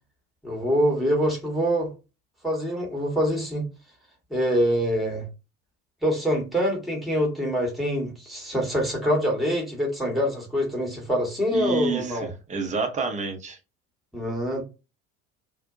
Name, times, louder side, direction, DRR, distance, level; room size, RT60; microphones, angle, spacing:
voice 1, 0.4-1.9 2.4-3.7 4.3-5.3 6.0-12.3 14.1-14.7, equal, ahead, 1.0 m, -25 dB
voice 2, 11.5-13.6, right 4 dB, 15° right, 0.6 m, -29 dB
2.5 x 2.1 x 2.3 m
figure-of-eight pair, 60°, 44 cm